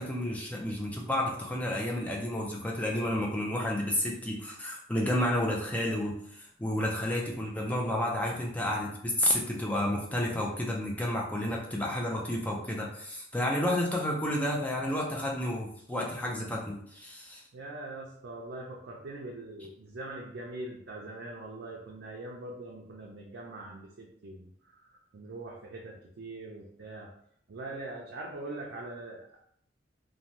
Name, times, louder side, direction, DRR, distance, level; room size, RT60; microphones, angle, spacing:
voice 1, 0.0-17.4, left 1 dB, 10° left, -2 dB, 0.4 m, -31 dB
voice 2, 17.5-27.1 27.5-29.4, right 2 dB, 70° right, -3 dB, 0.5 m, -42 dB
2.6 x 2.1 x 3.0 m, 0.66 s
head